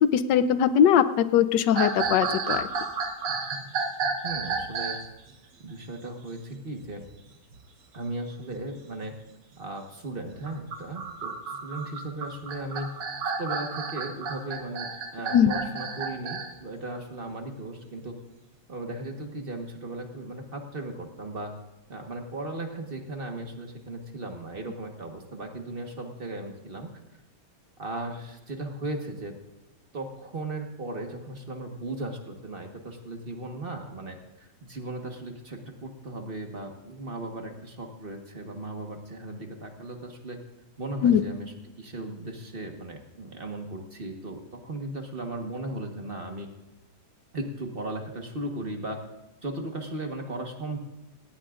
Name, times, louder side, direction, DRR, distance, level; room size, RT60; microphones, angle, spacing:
voice 1, 0.0-2.7 15.3-15.5 41.0-41.2, left 9 dB, 85° left, 13 dB, 1.3 m, -21 dB
sound 1, 1.7-5.1 6.5-7.1 7.5-7.6 8.3-8.6 10.3-16.5, right 4 dB, 85° right, 1.9 m, -31 dB
voice 2, 4.2-5.0 5.6-7.0 7.9-9.1 9.6-12.9 13.2-18.1 18.7-21.5 21.9-26.9 27.8-29.4 29.9-40.4 40.8-46.5 47.3-49.0 49.4-50.8, right 2 dB, 35° right, 3 dB, 1.5 m, -37 dB
18.5 x 16.5 x 2.5 m, 0.99 s
omnidirectional pair, 1.8 m